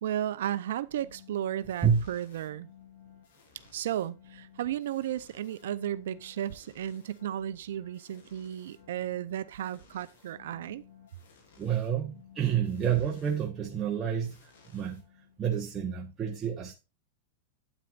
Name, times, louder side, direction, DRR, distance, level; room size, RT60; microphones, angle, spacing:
voice 1, 0.0-2.7 3.7-10.8, right 11 dB, 75° right, 0.6 m, -34 dB
sound 1, 0.9-15.6, left 8 dB, 75° left, 3.7 m, -57 dB
voice 2, 11.6-14.4 14.7-15.0 15.4-16.7, right 8 dB, 25° right, 1.2 m, -29 dB
9.1 x 9.0 x 2.5 m
hypercardioid pair, 125°, 0 cm